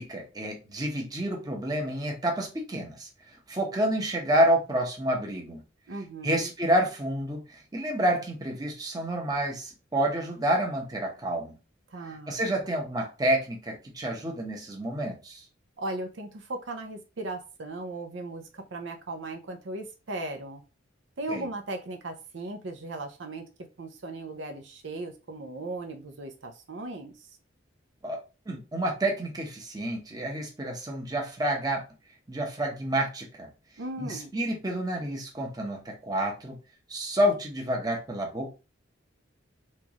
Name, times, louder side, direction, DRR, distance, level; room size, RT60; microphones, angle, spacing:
voice 1, 0.0-3.1 3.5-5.6 6.2-11.6 12.3-15.4 21.3-21.5 28.0-28.2 28.5-31.8 32.3-33.5 34.0-36.5 36.9-38.5, right 1 dB, 20° right, 0.9 m, -29 dB
voice 2, 5.9-6.5 11.9-12.4 15.8-20.6 21.2-23.5 23.8-27.3 33.8-34.3, right 2 dB, 70° right, 0.6 m, -37 dB
4.4 x 2.4 x 2.9 m
head